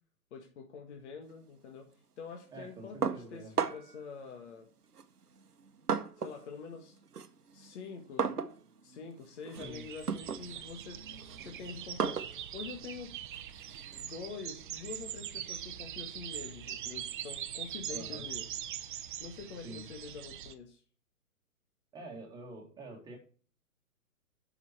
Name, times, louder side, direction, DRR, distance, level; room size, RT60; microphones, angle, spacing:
voice 1, 0.3-1.9 2.2-4.7 6.2-7.0 7.5-8.3 8.8-11.0 11.4-13.2 14.0-18.5 19.2-20.8, left 5 dB, 50° left, 2 dB, 1.8 m, -46 dB
voice 2, 2.5-3.5 9.6-9.8 10.5-10.6 11.1-11.2 17.9-18.2 19.6-19.9 21.9-23.2, right 2 dB, 10° right, 0 dB, 2.2 m, -47 dB
sound 1, 3.0-4.0 4.9-6.5 6.8-14.1, right 6 dB, 90° right, 1.0 m, -37 dB
sound 2, 9.5-20.5, right 10 dB, 35° right, 0.8 m, -42 dB
9.0 x 5.9 x 4.3 m, 0.41 s
hypercardioid pair, 130°, 45 cm